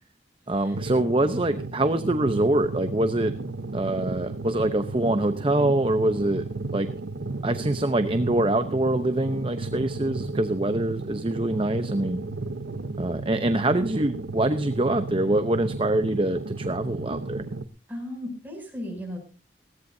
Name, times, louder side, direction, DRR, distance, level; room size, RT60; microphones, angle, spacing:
voice 1, 0.5-3.3 3.7-6.4 6.7-6.9 7.4-12.2 13.0-17.5, right 1 dB, 30° right, 10 dB, 0.8 m, -24 dB
sound 1, 0.7-17.7, right 3 dB, 80° right, 0.9 m, -34 dB
voice 2, 17.9-19.2, left 1 dB, 10° right, 0 dB, 7.2 m, -35 dB
20.0 x 17.0 x 2.7 m, 0.34 s
head